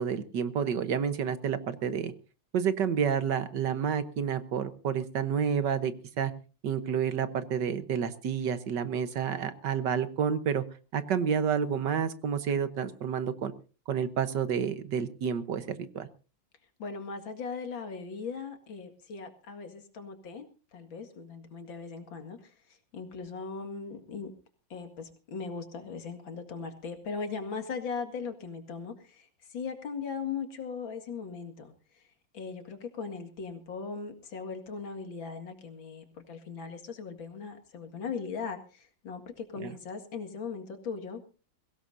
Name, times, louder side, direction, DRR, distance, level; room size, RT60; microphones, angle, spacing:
voice 1, 0.0-2.1 2.5-6.3 6.6-10.6 10.9-13.5 13.9-16.1 39.6-39.7, right 7 dB, 65° right, 12 dB, 1.7 m, -29 dB
voice 2, 16.8-20.4 20.7-24.3 24.7-32.1 32.3-41.2, left 5 dB, 80° left, 7 dB, 2.7 m, -39 dB
22.5 x 17.0 x 2.7 m, 0.34 s
omnidirectional pair, 2.1 m